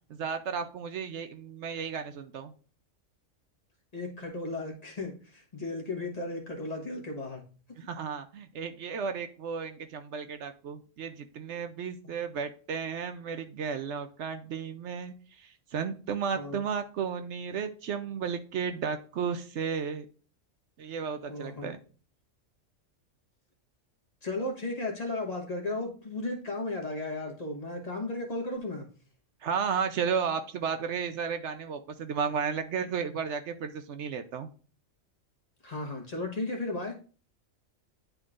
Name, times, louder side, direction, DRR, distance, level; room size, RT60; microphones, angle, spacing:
voice 1, 0.1-2.5 7.8-20.1 20.8-21.8 29.4-34.5, right 6 dB, 70° right, 8 dB, 0.9 m, -33 dB
voice 2, 3.9-7.4 16.3-16.6 21.3-21.7 24.2-28.9 35.6-37.0, left 2 dB, 30° left, 0 dB, 1.4 m, -35 dB
10.5 x 3.8 x 2.4 m, 0.38 s
omnidirectional pair, 1.3 m